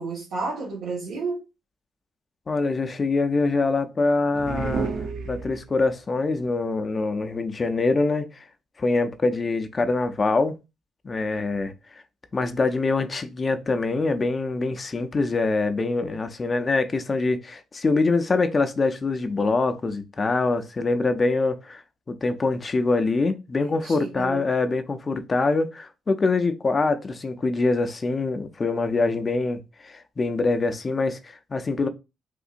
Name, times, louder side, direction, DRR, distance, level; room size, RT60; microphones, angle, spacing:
voice 1, 0.0-1.4 23.6-24.5, right 3 dB, 85° right, 1.3 m, -31 dB
voice 2, 2.5-4.9 5.3-8.5 8.8-10.6 11.0-11.7 12.3-21.8 22.1-31.9, left 3 dB, 30° left, 0.5 m, -24 dB
sound 1, 4.3-5.9, right 4 dB, 70° right, 0.6 m, -30 dB
3.7 x 2.6 x 2.5 m
cardioid pair, 90°, 0 cm